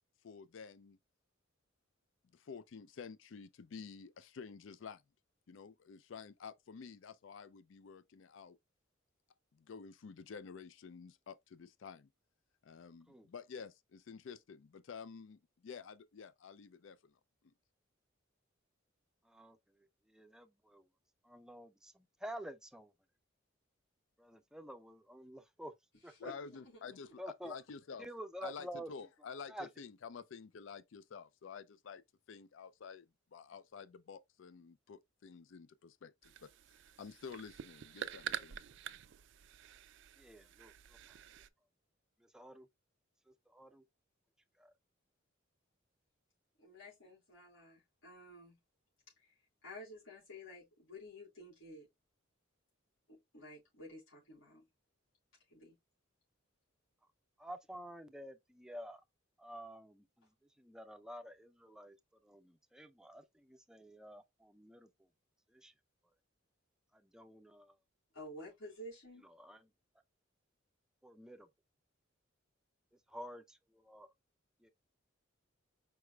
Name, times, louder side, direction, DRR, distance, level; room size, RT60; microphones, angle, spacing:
voice 1, 0.2-1.0 2.3-5.0 5.5-8.6 9.5-12.1 12.6-17.2 17.4-17.5 26.2-28.1 28.4-32.0 32.3-36.5 37.0-38.6, left 5 dB, 65° left, 0.4 m, -50 dB
voice 2, 19.2-20.9 21.2-22.9 24.2-25.7 26.0-26.3 27.2-27.5 28.0-28.9 29.5-29.7 40.2-41.0 42.2-42.7 43.3-43.8 44.6-44.7 57.4-59.0 59.4-60.3 60.6-62.0 62.2-65.1 65.5-65.7 66.9-67.8 69.3-69.6 71.0-71.5 73.1-74.1 74.6-74.7, equal, 5° right, 0.5 m, -50 dB
voice 3, 26.2-27.1 46.6-48.6 49.2-51.9 53.1-54.7 55.5-55.8 68.1-69.3, left 1 dB, 85° left, 3.6 m, -52 dB
sound 1, 36.2-41.5, right 9 dB, 65° right, 0.4 m, -47 dB
4.9 x 4.8 x 2.2 m
head